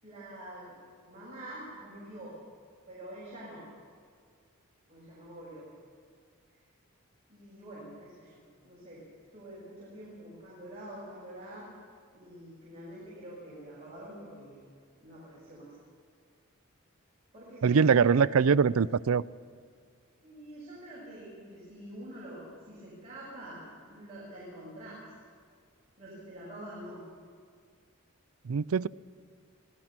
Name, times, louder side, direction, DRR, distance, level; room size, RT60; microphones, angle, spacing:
voice 1, 0.0-0.8 1.0-2.4 2.9-3.6 4.9-5.7 7.3-8.4 8.6-9.1 9.3-11.7 12.1-14.6 15.0-15.7 17.3-18.7 20.2-25.1 26.0-27.0, right 1 dB, 30° right, -7 dB, 6.9 m, -46 dB
voice 2, 17.6-19.2 28.5-28.9, right 6 dB, 75° right, 19 dB, 0.4 m, -23 dB
26.0 x 18.0 x 6.0 m, 2.1 s
head